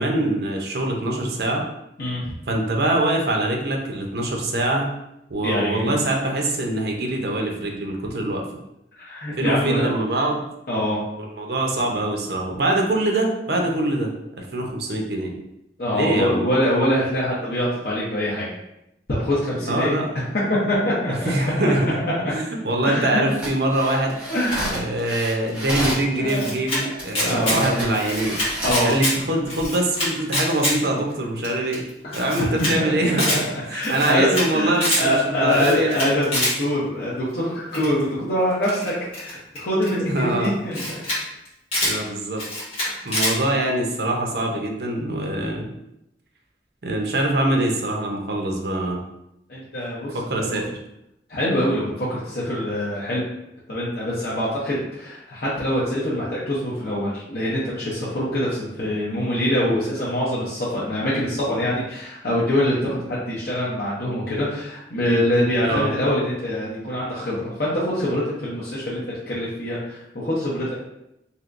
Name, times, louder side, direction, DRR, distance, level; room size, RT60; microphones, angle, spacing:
voice 1, 0.0-1.6 2.5-4.9 5.3-8.4 9.4-10.4 11.2-14.1 14.4-15.3 15.9-16.4 19.7-20.1 21.1-22.0 22.3-24.2 24.7-28.4 28.8-31.9 32.1-33.3 33.7-36.0 40.1-40.6 41.8-42.4 43.0-45.6 46.8-49.0 50.1-50.7 65.6-65.9, right 1 dB, 60° right, 1 dB, 0.6 m, -23 dB
voice 2, 2.0-2.3 5.4-6.0 9.0-9.9 10.7-11.0 15.8-18.5 19.1-19.9 20.3-21.3 22.2-22.3 22.8-23.2 24.3-24.7 26.2-26.9 27.2-27.7 28.6-29.0 32.0-33.0 33.3-33.4 33.7-40.8 42.9-43.0 49.5-50.6 51.3-53.2 53.7-70.8, equal, 60° left, -8 dB, 0.7 m, -24 dB
sound 1, 23.3-26.1 27.0-27.1 27.4-28.9 29.4-29.7, right 1 dB, 5° right, 1.3 m, -30 dB
Camera, 25.9-26.8 27.1-27.6 27.9-29.1 29.5-30.7 31.1-31.2 31.4-31.5 31.7-31.8 32.1-32.7 33.0-33.4 33.8-34.5 34.7-35.0 35.5-36.5 37.7-38.0 38.6-39.9 40.4-40.5 40.7-41.2 41.4-41.9 42.4-43.3, left 1 dB, 35° left, 1.2 m, -25 dB
3.3 x 2.8 x 2.5 m, 0.85 s
head